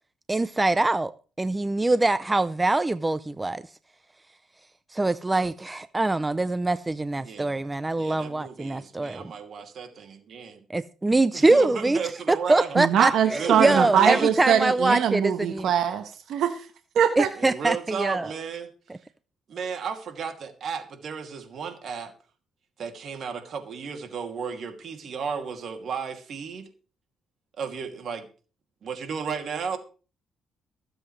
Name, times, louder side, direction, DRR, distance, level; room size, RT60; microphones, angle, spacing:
voice 1, 0.3-1.1 1.4-3.6 4.9-9.2 10.7-12.0 12.5-15.7 17.2-18.2, right 2 dB, 15° right, 0.6 m, -23 dB
voice 2, 7.2-7.5 7.9-10.6 11.3-12.8 13.3-14.3 17.3-18.7 19.0-19.1 19.5-22.1 22.8-26.7 27.6-28.3 28.8-29.8, right 6 dB, 60° right, 2.6 m, -34 dB
voice 3, 12.8-16.7 16.9-17.3, right 8 dB, 75° right, 1.2 m, -22 dB
23.5 x 7.8 x 3.2 m
cardioid pair, 90°, 0 cm